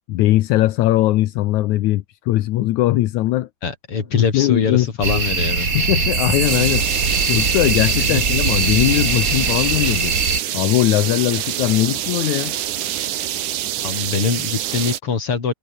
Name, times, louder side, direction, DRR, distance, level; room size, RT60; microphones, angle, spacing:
voice 1, 0.1-3.5 4.2-4.9 5.1-5.2 5.7-6.9 7.3-10.2 10.5-12.5, left 15 dB, 75° left, 2.2 m, -19 dB
voice 2, 3.6-5.7 8.0-8.2 13.8-15.5, left 5 dB, 45° left, 4.4 m, -23 dB
sound 1, 5.0-10.4, right 4 dB, 30° right, 3.0 m, -21 dB
sound 2, 6.5-15.0, right 12 dB, 85° right, 2.9 m, -26 dB
omnidirectional pair, 3.5 m